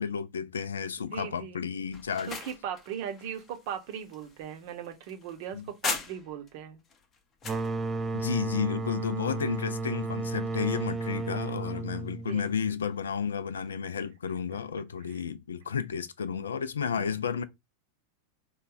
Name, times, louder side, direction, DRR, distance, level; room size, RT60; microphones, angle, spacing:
voice 1, 0.0-2.3 5.5-5.6 8.1-17.4, left 6 dB, 70° left, 0.4 m, -32 dB
voice 2, 1.1-1.6 2.3-6.8 12.3-12.5 14.5-14.6 15.1-15.2 16.3-16.5 16.9-17.2, right 8 dB, 50° right, 0.7 m, -39 dB
sound 1, 1.9-6.5 6.9-7.7, left 5 dB, 25° left, 0.6 m, -39 dB
sound 2, 7.4-12.9, right 3 dB, 20° right, 0.3 m, -33 dB
3.1 x 2.2 x 3.8 m
figure-of-eight pair, 90°, 0 cm